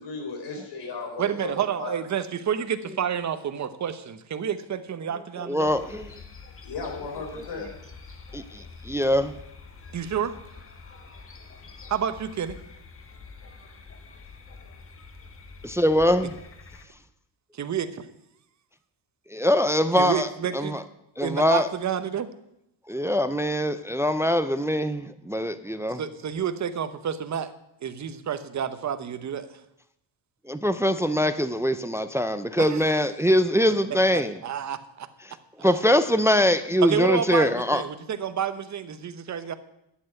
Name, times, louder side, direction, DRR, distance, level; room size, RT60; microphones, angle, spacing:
voice 1, 0.0-1.9 6.6-7.7, left 4 dB, 60° left, 2 dB, 4.1 m, -35 dB
voice 2, 1.2-5.7 9.9-10.3 11.9-12.6 17.5-18.1 20.0-20.8 21.2-22.3 26.0-27.5 27.8-29.5 32.6-32.8 34.1-35.1 35.6-35.8 36.8-39.5, right 8 dB, 35° right, 11 dB, 0.9 m, -29 dB
voice 3, 5.4-6.2 7.3-7.4 8.3-9.4 15.6-16.3 19.3-20.8 21.2-21.7 22.9-26.0 30.5-34.4 35.6-37.8, equal, 5° right, 11 dB, 0.4 m, -23 dB
sound 1, 5.7-16.9, left 4 dB, 30° left, 1.3 m, -46 dB
11.5 x 7.9 x 9.1 m, 0.81 s
cardioid pair, 160°, 46 cm